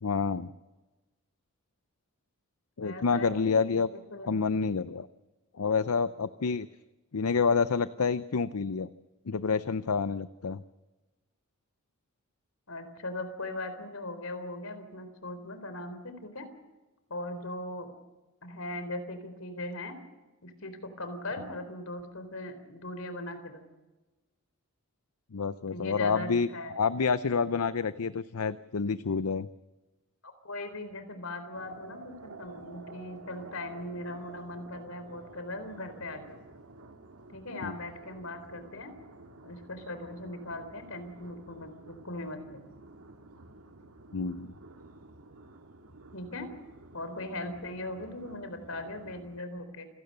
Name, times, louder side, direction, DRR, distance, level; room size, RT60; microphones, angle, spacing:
voice 1, 0.0-0.5 2.8-3.9 4.2-5.1 5.6-6.7 7.1-8.9 9.3-10.6 25.3-26.5 26.7-29.5 37.6-37.7 44.1-44.5, left 5 dB, 90° left, 14 dB, 0.6 m, -28 dB
voice 2, 2.8-4.3 12.7-16.5 17.1-17.9 18.4-20.0 20.4-23.6 25.7-26.8 30.2-36.4 37.3-38.9 39.4-42.6 46.1-46.5 46.9-49.9, left 2 dB, 70° left, 9 dB, 4.0 m, -39 dB
sound 1, 31.5-49.4, right 2 dB, 90° right, 1.9 m, -51 dB
28.5 x 17.0 x 6.8 m, 1.1 s
head